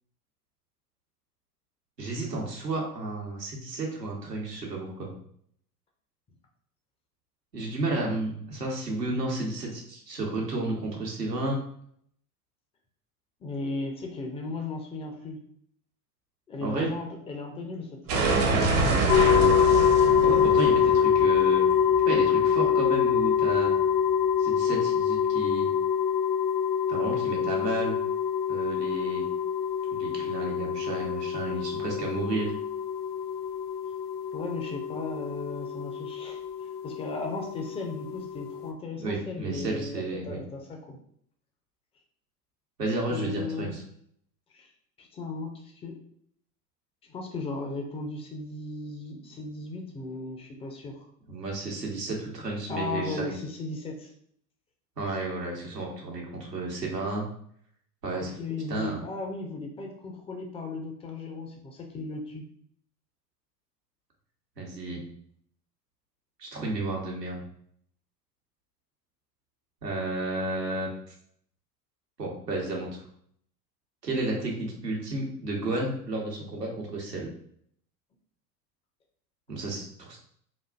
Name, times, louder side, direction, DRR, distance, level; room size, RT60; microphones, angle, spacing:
voice 1, 2.0-5.1 7.5-11.6 16.6-16.9 20.2-21.6 22.1-23.7 24.4-25.7 26.9-28.0 28.5-29.2 29.9-32.5 39.0-40.4 42.8-43.8 51.3-53.3 55.0-57.2 58.0-58.4 58.7-59.0 64.6-65.0 66.4-67.4 69.8-71.1 72.2-73.1 74.0-77.3 79.5-80.2, right 2 dB, 90° right, -1 dB, 1.0 m, -32 dB
voice 2, 13.4-15.4 16.5-19.1 34.3-41.0 43.1-43.7 44.5-44.7 45.0-46.0 47.0-51.1 52.7-54.1 58.4-62.4, left 3 dB, 15° left, 2 dB, 0.4 m, -36 dB
sound 1, 18.1-22.9, right 3 dB, 65° right, 0.9 m, -27 dB
sound 2, 19.1-38.7, left 8 dB, 65° left, 0.6 m, -25 dB
4.0 x 2.5 x 2.3 m, 0.65 s
figure-of-eight pair, 75°, 48 cm